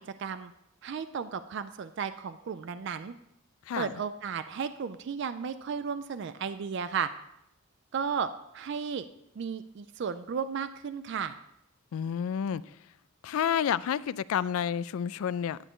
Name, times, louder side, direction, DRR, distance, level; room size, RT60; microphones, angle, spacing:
voice 1, 0.1-0.5 0.8-3.2 3.8-7.1 7.9-8.3 8.5-9.1 9.4-11.3, right 6 dB, 55° right, 0.4 m, -34 dB
voice 2, 11.9-12.6 13.2-15.6, left 8 dB, 75° left, 0.3 m, -29 dB
11.0 x 8.0 x 3.7 m
head